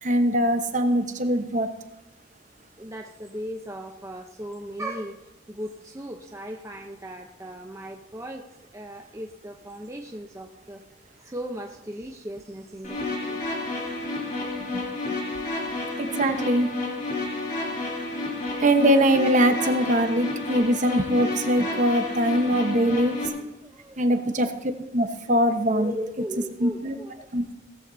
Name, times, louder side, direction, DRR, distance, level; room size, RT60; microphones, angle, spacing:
voice 1, 0.0-1.7 14.7-14.8 16.0-16.7 18.6-23.2 24.0-25.9 26.6-27.0 27.3-27.5, equal, 40° right, 7 dB, 1.1 m, -22 dB
voice 2, 2.8-5.2 5.5-8.5 8.7-10.8 11.2-13.0 13.3-13.4 20.6-20.7 23.4-24.2 25.7-27.3, equal, 15° right, 2 dB, 0.7 m, -37 dB
sound 1, 12.8-23.3, left 2 dB, 40° left, 3.6 m, -30 dB
18.0 x 14.5 x 2.7 m, 0.94 s
head